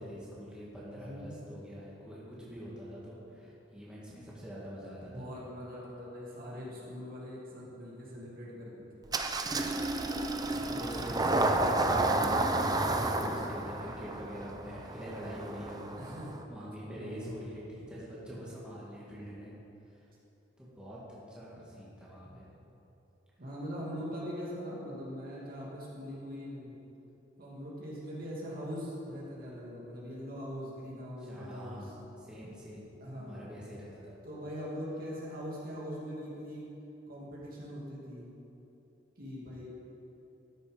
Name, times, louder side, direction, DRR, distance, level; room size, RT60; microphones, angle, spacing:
voice 1, 0.0-5.3 10.5-16.1 16.5-19.5 20.6-21.0 21.3-22.5 31.3-31.9 32.2-32.9 33.1-34.2, equal, 5° right, -8 dB, 2.1 m, -44 dB
voice 2, 1.0-1.4 5.1-9.0 16.0-16.4 16.9-17.5 23.4-26.8 27.4-31.9 33.0-33.5 34.2-36.7 37.1-38.3 39.2-39.7, equal, 50° right, -5 dB, 2.5 m, -42 dB
Engine starting, 9.1-16.4, right 2 dB, 20° right, 0.6 m, -31 dB
13.0 x 7.2 x 5.1 m, 2.9 s
head